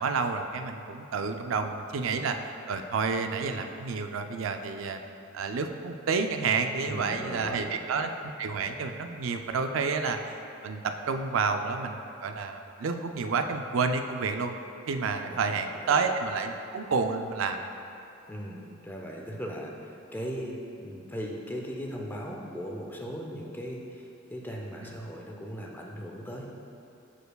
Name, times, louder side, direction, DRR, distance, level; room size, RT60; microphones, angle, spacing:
voice 1, 0.0-2.4 2.7-5.0 5.3-8.1 8.4-10.4 10.6-14.5 14.9-17.6, right 4 dB, 70° right, 6 dB, 0.4 m, -29 dB
voice 2, 6.8-7.9 15.2-15.4 15.8-16.0 18.3-26.6, equal, 10° left, -1 dB, 0.5 m, -38 dB
11.5 x 4.5 x 2.3 m, 2.7 s
head